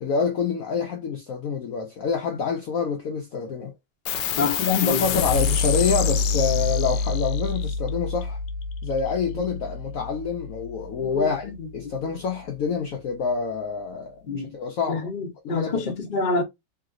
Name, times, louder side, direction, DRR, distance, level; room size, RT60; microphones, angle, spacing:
voice 1, 0.0-3.7 4.4-8.4 8.8-15.1 15.4-15.9, left 5 dB, 90° left, 0.7 m, -27 dB
sound 1, 4.1-11.0, left 5 dB, 70° left, 1.1 m, -27 dB
voice 2, 4.4-5.0 11.0-11.5 14.3-14.5 14.9-16.4, left 3 dB, 50° left, 0.5 m, -27 dB
3.2 x 2.8 x 2.5 m
omnidirectional pair, 2.2 m